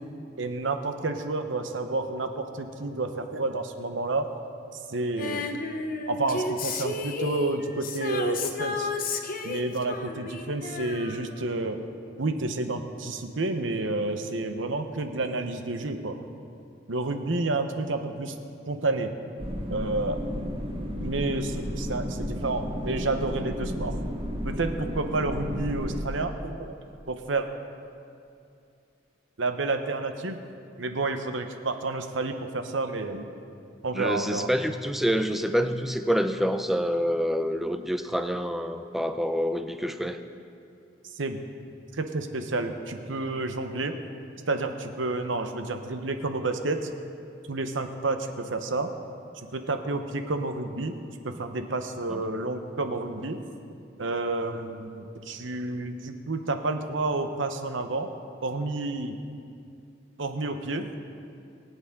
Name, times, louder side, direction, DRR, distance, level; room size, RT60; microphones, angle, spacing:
voice 1, 0.4-4.3 4.7-5.5 6.1-8.9 9.4-11.8 12.2-16.2 16.9-18.3 18.7-19.1 19.7-20.2 21.0-24.0 24.4-26.8 27.1-27.5 29.4-30.4 30.8-33.2 33.8-34.5 41.1-41.4 42.0-43.9 44.5-46.9 47.5-48.9 49.5-50.9 51.2-53.4 54.0-58.1 58.4-59.2 60.2-60.9, right 2 dB, 85° right, 7 dB, 1.0 m, -30 dB
Female singing, 5.2-11.8 12.1-12.2, left 3 dB, 50° left, 0.8 m, -33 dB
sound 1, 19.4-26.0, equal, 30° right, 1.4 m, -33 dB
voice 2, 33.9-40.2 52.1-52.2, equal, ahead, 7 dB, 0.5 m, -27 dB
22.0 x 8.3 x 3.7 m, 2.5 s
head